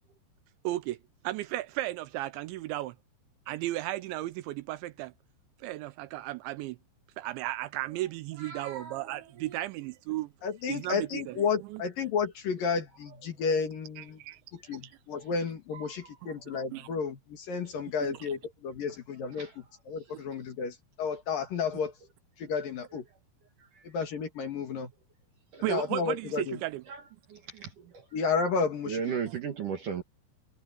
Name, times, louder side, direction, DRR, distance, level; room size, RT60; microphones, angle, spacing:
voice 1, 0.6-1.0 1.2-2.9 3.5-5.1 5.6-6.8 7.2-10.3 10.7-11.8 14.0-14.4 14.7-14.8 16.7-16.9 18.1-18.2 20.1-20.2 25.6-26.8, right 16 dB, 85° right, 2.9 m, -35 dB
voice 2, 8.4-9.6 15.2-15.3 15.7-16.1 19.4-19.5 23.8-23.9 25.5-25.6 26.9-27.0 27.3-28.0 28.9-30.0, right 7 dB, 55° right, 2.5 m, -37 dB
voice 3, 10.4-14.2 14.5-21.9 22.4-23.0 23.8-24.9 25.7-26.6 28.1-29.0, left 5 dB, 55° left, 3.4 m, -32 dB
omnidirectional pair, 5.5 m